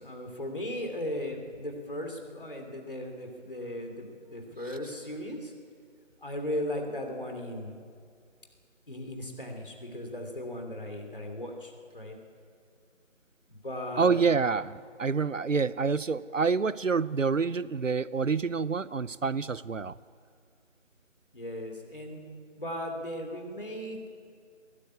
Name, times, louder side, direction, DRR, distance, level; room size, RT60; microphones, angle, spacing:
voice 1, 0.0-5.5 6.2-7.8 8.9-12.2 13.5-14.2 21.3-22.2 22.6-24.1, left 1 dB, 45° left, 3 dB, 3.0 m, -37 dB
voice 2, 14.0-20.0, right 5 dB, 90° right, 19 dB, 0.8 m, -27 dB
21.0 x 13.0 x 9.8 m, 2.2 s
figure-of-eight pair, 170°, 37 cm